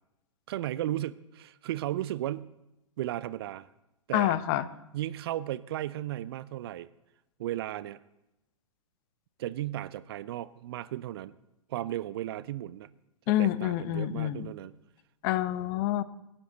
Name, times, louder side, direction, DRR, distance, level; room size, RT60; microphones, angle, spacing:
voice 1, 0.5-2.5 3.0-3.7 4.1-4.4 4.9-6.9 7.4-8.0 9.4-11.3 11.7-12.9 13.4-14.7, right 13 dB, 50° right, 18 dB, 0.6 m, -35 dB
voice 2, 4.1-4.7 13.3-14.5 15.2-16.0, left 13 dB, 40° left, 16 dB, 0.8 m, -27 dB
24.0 x 10.0 x 4.0 m, 0.93 s
figure-of-eight pair, 110°, 17 cm